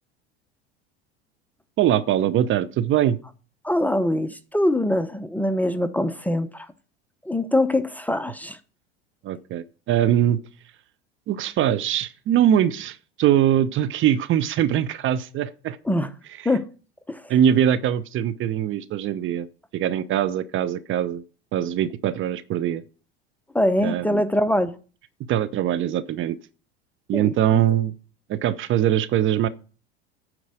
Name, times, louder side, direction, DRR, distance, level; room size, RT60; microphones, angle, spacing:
voice 1, 1.8-3.2 9.2-10.4 11.3-15.8 17.3-19.5 19.7-21.2 21.5-22.8 23.8-24.2 25.3-26.4 27.1-27.9 28.3-29.5, right 10 dB, 40° right, 0.7 m, -22 dB
voice 2, 3.6-6.7 7.2-8.6 15.8-16.1 16.4-16.7 17.1-17.2 23.5-24.7 27.1-27.6, left 1 dB, 5° left, 0.8 m, -23 dB
9.5 x 4.7 x 7.7 m
hypercardioid pair, 75°, 31 cm